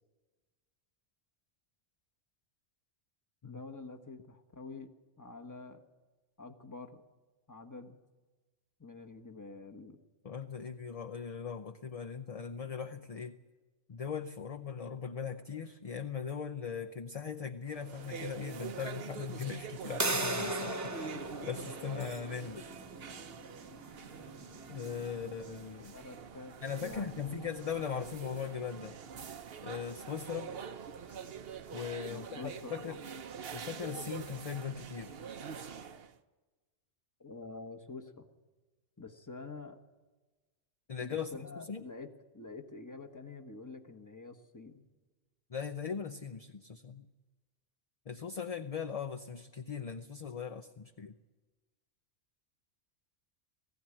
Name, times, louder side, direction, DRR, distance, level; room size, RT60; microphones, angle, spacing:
voice 1, 3.4-4.9 5.2-5.8 6.4-7.0 7.5-8.0 8.8-10.0 25.4-25.5 25.9-27.3 32.1-33.0 37.2-38.3 39.0-39.8 41.0-44.8, left 3 dB, 15° left, 5 dB, 1.3 m, -47 dB
voice 2, 10.2-13.4 13.9-22.7 24.7-25.9 26.6-29.0 29.6-30.5 31.7-33.0 33.5-35.2 40.9-41.8 45.5-47.0 48.1-51.1, left 6 dB, 40° left, 7 dB, 0.7 m, -39 dB
sound 1, 17.7-36.1, right 6 dB, 60° right, 1.0 m, -45 dB
sound 2, 20.0-25.6, right 1 dB, 15° right, 0.8 m, -38 dB
19.5 x 15.5 x 9.9 m, 1.3 s
omnidirectional pair, 1.1 m